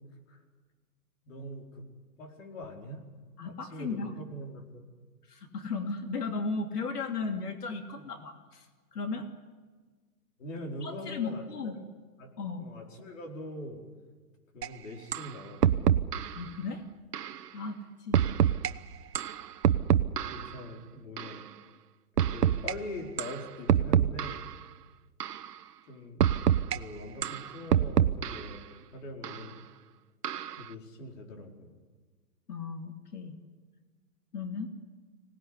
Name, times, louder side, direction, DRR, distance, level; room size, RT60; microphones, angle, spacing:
voice 1, 1.3-1.9 2.2-3.0 3.4-4.8 10.4-11.8 12.2-13.8 14.5-16.0 20.3-21.5 22.2-24.4 25.9-26.2 26.6-29.7 30.6-31.7, left 1 dB, 50° left, 2 dB, 5.0 m, -43 dB
voice 2, 3.4-4.1 5.3-8.6 8.9-9.3 10.8-11.8 12.4-12.6 16.3-16.8 17.5-18.2 32.5-33.4 34.3-34.7, left 4 dB, 75° left, 5 dB, 3.0 m, -35 dB
sound 1, 14.6-14.7 15.1-15.3 15.6-16.4 17.1-17.4 18.1-18.7 19.1-20.5 21.2-21.4 22.2-22.7 23.2-23.4 23.7-24.5 25.2-25.5 26.2-26.8 27.2-28.5 29.2-29.4 30.2-30.6, right 10 dB, 75° right, 1.1 m, -26 dB
25.0 x 18.5 x 9.8 m, 1.4 s
hypercardioid pair, 160°, 47 cm